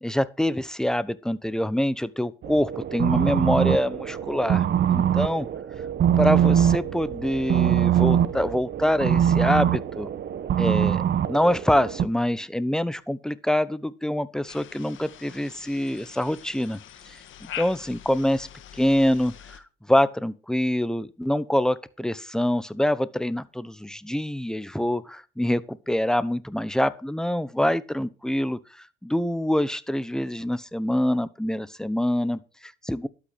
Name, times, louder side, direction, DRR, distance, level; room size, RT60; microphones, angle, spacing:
voice 1, 0.0-4.7 4.9-5.5 6.2-10.1 10.6-11.0 11.3-16.8 17.1-18.5 18.7-19.6 19.9-28.6 29.0-33.1, left 1 dB, 5° left, 1.0 m, -25 dB
sound 1, 2.4-12.1, right 10 dB, 60° right, 1.0 m, -23 dB
sound 2, 14.5-19.6, left 10 dB, 75° left, 1.6 m, -43 dB
12.0 x 8.4 x 5.8 m
cardioid pair, 90°, 20 cm